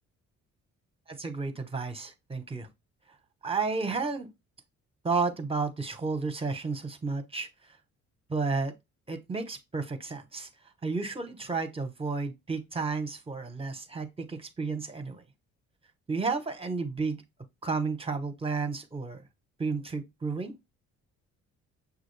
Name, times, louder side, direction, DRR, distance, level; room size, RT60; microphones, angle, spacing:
voice 1, 1.1-2.7 3.4-4.3 5.0-7.5 8.3-8.7 9.1-10.5 10.8-15.2 16.1-17.2 17.6-19.2 19.6-20.5, right 4 dB, 20° right, 0.9 m, -32 dB
6.1 x 2.4 x 3.2 m
cardioid pair, 90°, 30 cm